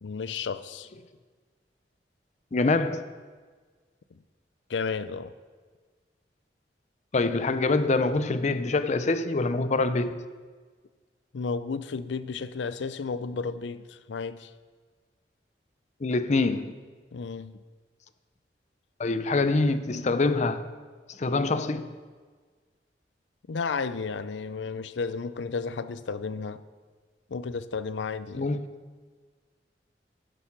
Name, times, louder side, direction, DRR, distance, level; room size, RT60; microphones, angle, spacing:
voice 1, 0.0-0.9 4.7-5.3 11.3-14.5 17.1-17.6 23.5-26.6 27.3-28.5, left 4 dB, 90° left, 0.5 m, -33 dB
voice 2, 2.5-3.1 7.1-10.2 16.0-16.8 19.0-20.7 21.1-22.0 28.4-28.7, left 3 dB, 40° left, 0.5 m, -25 dB
10.0 x 8.3 x 5.9 m
head